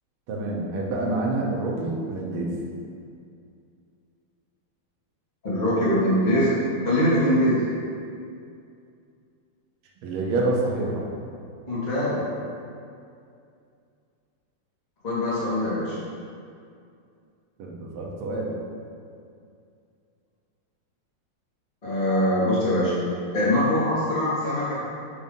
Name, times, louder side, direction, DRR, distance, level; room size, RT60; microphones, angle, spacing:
voice 1, 0.3-2.5 10.0-11.0 17.6-18.5, right 2 dB, 80° right, -3 dB, 1.8 m, -27 dB
voice 2, 5.4-6.5 6.8-7.6 11.7-12.2 15.0-16.0 21.8-23.0 23.3-24.8, left 1 dB, 25° left, -9 dB, 1.1 m, -22 dB
6.9 x 2.7 x 5.2 m, 2.4 s
omnidirectional pair, 2.4 m